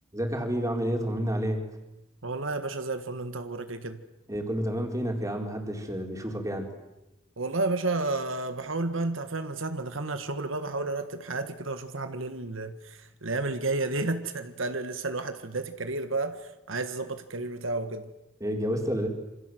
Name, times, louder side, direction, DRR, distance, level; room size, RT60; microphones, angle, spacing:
voice 1, 0.1-1.6 4.3-6.7 18.4-19.1, equal, 15° right, 3 dB, 4.2 m, -29 dB
voice 2, 2.2-4.0 7.4-18.1, right 2 dB, 70° right, 9 dB, 1.7 m, -31 dB
28.0 x 26.5 x 7.9 m, 0.97 s
head